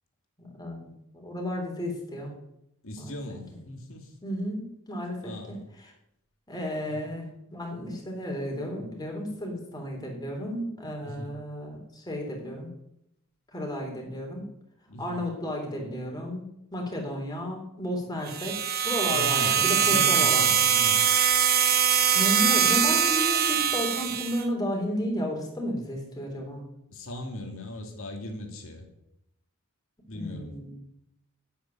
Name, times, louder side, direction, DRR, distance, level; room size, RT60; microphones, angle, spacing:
voice 1, 0.4-2.3 3.0-3.1 4.2-5.9 6.5-12.7 13.5-14.5 15.0-16.5 16.7-20.5 22.1-26.6 30.1-30.8, equal, 20° left, 0 dB, 3.7 m, -33 dB
voice 2, 2.8-4.1 5.2-5.6 6.9-7.0 11.0-11.3 14.9-15.2 19.0-21.0 26.9-28.9 30.1-30.5, left 1 dB, 65° left, 3 dB, 2.7 m, -38 dB
sound 1, 18.3-24.4, right 8 dB, 45° right, 1.0 m, -23 dB
9.2 x 8.9 x 9.0 m, 0.80 s
head